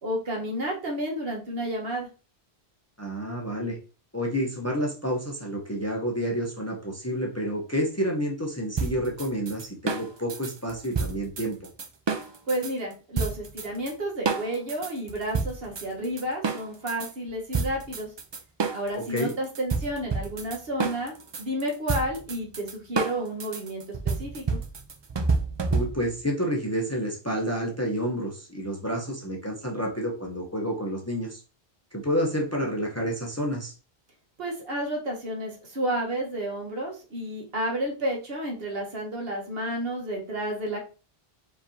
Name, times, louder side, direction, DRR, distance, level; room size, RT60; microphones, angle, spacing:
voice 1, 0.0-2.1 12.5-18.1 18.7-24.6 34.4-40.8, right 1 dB, 70° right, 0 dB, 1.4 m, -31 dB
voice 2, 3.0-3.8 4.1-11.6 19.0-19.3 25.7-31.4 31.9-33.7, equal, 15° left, 0 dB, 0.7 m, -29 dB
sound 1, 8.8-12.7 13.2-13.9 14.3-17.1 17.5-26.2, right 4 dB, 45° right, 0.3 m, -29 dB
4.9 x 3.2 x 2.7 m, 0.35 s
omnidirectional pair, 1.1 m